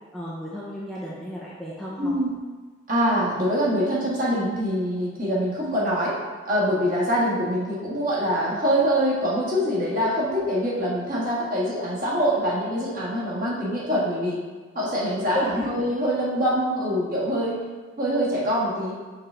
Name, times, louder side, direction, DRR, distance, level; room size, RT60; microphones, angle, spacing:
voice 1, 0.1-2.2 15.1-15.7, equal, ahead, -7 dB, 0.7 m, -33 dB
voice 2, 2.0-2.3 2.9-6.1 6.4-14.4 14.7-17.6 18.0-18.9, equal, 45° right, -6 dB, 1.7 m, -24 dB
5.9 x 3.9 x 4.4 m, 1.4 s
head